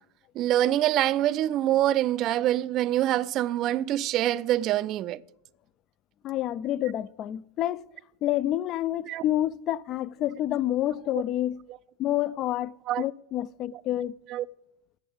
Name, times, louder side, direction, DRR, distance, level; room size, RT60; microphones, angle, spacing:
voice 1, 0.4-5.2 9.1-9.2 12.9-13.0 14.3-14.5, right 13 dB, 45° right, 0.4 m, -25 dB
voice 2, 6.2-7.8 8.2-11.6 12.0-14.1, left 13 dB, 40° left, 0.4 m, -28 dB
8.7 x 6.8 x 7.9 m
hypercardioid pair, 105°, 0 cm